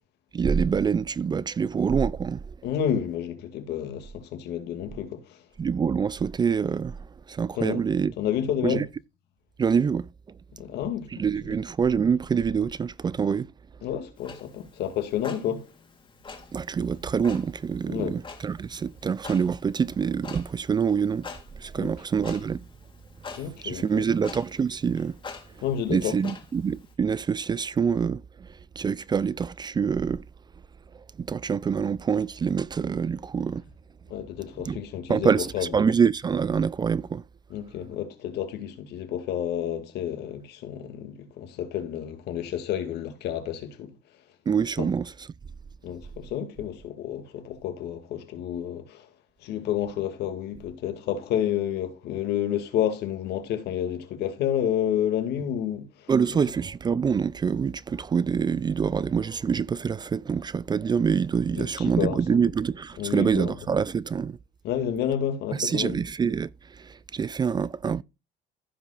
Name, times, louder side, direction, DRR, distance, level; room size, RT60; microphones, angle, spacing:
voice 1, 0.3-2.4 5.6-7.0 7.3-8.1 8.6-8.8 9.6-10.1 11.2-13.5 16.5-21.3 21.6-22.6 23.6-25.2 25.9-28.5 28.8-30.2 31.2-33.6 34.7-34.8 35.1-35.5 35.7-37.2 44.5-45.1 56.1-64.4 65.6-66.5 66.8-68.0, right 6 dB, 25° right, 0.3 m, -25 dB
voice 2, 2.6-5.4 7.5-7.9 8.2-8.9 10.5-11.2 13.8-15.7 17.9-18.2 21.8-21.9 23.4-24.0 25.6-26.3 34.1-35.9 37.5-43.9 44.8-44.9 45.8-49.1 49.4-56.1 61.5-62.4 63.0-63.5 64.6-66.0, left 10 dB, 80° left, 2.3 m, -30 dB
Clock, 14.2-26.9, left 5 dB, 30° left, 2.5 m, -46 dB
15.0 x 5.3 x 2.4 m
cardioid pair, 110°, 17 cm